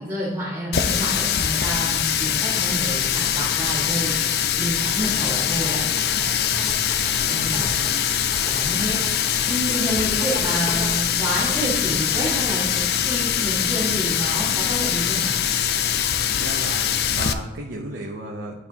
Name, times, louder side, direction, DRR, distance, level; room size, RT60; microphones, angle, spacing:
voice 1, 0.0-4.1 4.6-5.8 6.1-6.3 7.2-7.7 8.4-9.0 9.4-15.3, equal, 10° right, -13 dB, 2.0 m, -28 dB
Water tap faucet, 0.7-17.3, left 9 dB, 60° left, 0.4 m, -23 dB
sound 1, 5.0-10.9, right 1 dB, 40° right, 1.8 m, -37 dB
voice 2, 6.5-8.0 16.3-18.7, right 2 dB, 90° right, 0 dB, 0.7 m, -35 dB
11.5 x 4.2 x 2.9 m, 1.3 s
head